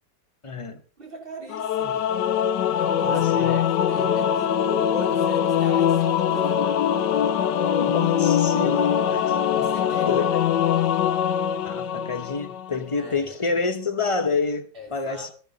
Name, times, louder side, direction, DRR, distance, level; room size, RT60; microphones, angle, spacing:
voice 1, 0.4-0.8 3.0-3.6 7.8-9.4 9.8-10.4 11.6-15.3, left 4 dB, 25° left, 0.7 m, -28 dB
voice 2, 1.0-2.1 2.8-6.7 9.5-10.5 13.0-13.6 14.7-15.3, right 1 dB, 30° right, 3.9 m, -38 dB
Singing / Musical instrument, 1.5-12.8, left 9 dB, 75° left, 1.4 m, -22 dB
14.5 x 10.5 x 4.0 m
omnidirectional pair, 1.9 m